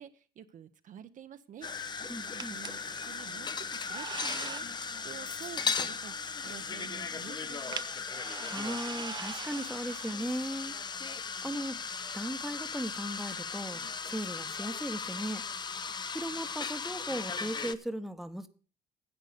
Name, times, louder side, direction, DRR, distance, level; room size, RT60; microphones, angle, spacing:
voice 1, 0.0-1.7 2.3-7.8, right 9 dB, 50° right, 0.8 m, -49 dB
sound 1, 1.6-17.8, left 5 dB, 25° left, 0.6 m, -37 dB
voice 2, 2.1-2.6 8.5-10.7 11.4-13.8 14.1-15.4 16.1-18.5, equal, ahead, 1.0 m, -37 dB
sound 2, 2.4-2.7 3.6-4.7 6.6-6.7 7.4-10.6, right 6 dB, 25° right, 0.5 m, -42 dB
10.5 x 8.2 x 6.6 m
cardioid pair, 110°, 17 cm